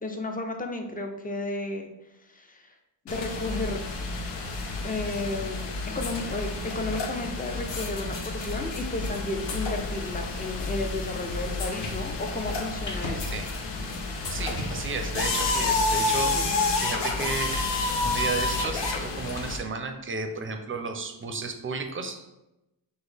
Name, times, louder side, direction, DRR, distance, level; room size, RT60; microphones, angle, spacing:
voice 1, 0.0-1.9 2.2-2.7 3.0-3.8 4.8-13.4 16.3-16.6, left 2 dB, 20° left, 4 dB, 0.5 m, -33 dB
sound 1, 3.1-19.6, left 3 dB, 70° left, 0.8 m, -30 dB
sound 2, 11.7-12.0 12.9-13.2 13.7-13.8 14.4-14.8 15.6-15.7 15.9-16.2 17.4-17.7 18.6-18.7, left 2 dB, 40° left, 0.9 m, -37 dB
voice 2, 14.3-16.4 16.7-17.6 18.0-22.2, right 4 dB, 30° right, 5 dB, 0.5 m, -33 dB
6.0 x 2.1 x 3.4 m, 0.93 s
cardioid pair, 105°, 44 cm